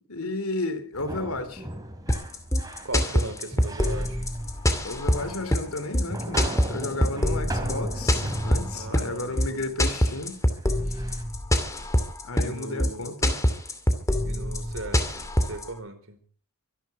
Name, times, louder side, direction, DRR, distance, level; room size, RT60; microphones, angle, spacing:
voice 1, 0.1-1.7 4.8-10.4 10.9-11.1 12.2-13.3, left 2 dB, 80° left, 3.0 m, -33 dB
sound 1, 0.9-11.2, right 1 dB, 15° right, 3.3 m, -37 dB
sound 2, 2.1-15.7, equal, 15° left, 2.5 m, -24 dB
voice 2, 2.8-4.3 8.7-9.7 12.4-13.2 14.2-16.2, right 2 dB, 70° right, 4.4 m, -38 dB
25.0 x 11.0 x 4.8 m
head